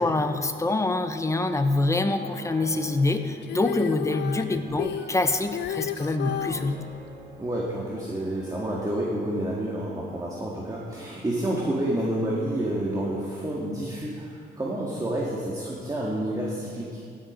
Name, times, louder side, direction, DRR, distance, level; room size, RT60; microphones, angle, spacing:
voice 1, 0.0-6.8, left 2 dB, 15° left, 8 dB, 0.9 m, -25 dB
Piano, 2.2-9.1, right 2 dB, 90° right, 3.6 m, -46 dB
Female singing, 3.4-6.7 8.7-8.8, left 11 dB, 60° left, 0.4 m, -32 dB
voice 2, 7.4-17.0, right 1 dB, 20° right, -4 dB, 1.9 m, -29 dB
16.0 x 7.6 x 5.3 m, 2.5 s
cardioid pair, 90°, 20 cm